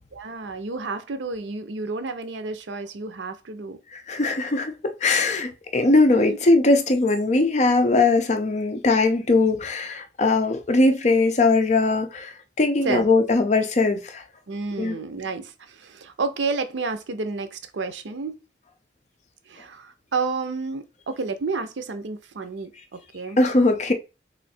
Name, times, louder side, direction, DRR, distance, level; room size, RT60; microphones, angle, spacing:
voice 1, 0.1-3.8 6.2-6.4 12.8-13.1 14.5-18.4 19.5-23.4, right 4 dB, 80° right, 0.6 m, -30 dB
voice 2, 3.9-14.2 14.8-15.0 23.4-23.9, left 3 dB, 40° left, 0.6 m, -20 dB
3.2 x 2.6 x 4.1 m
head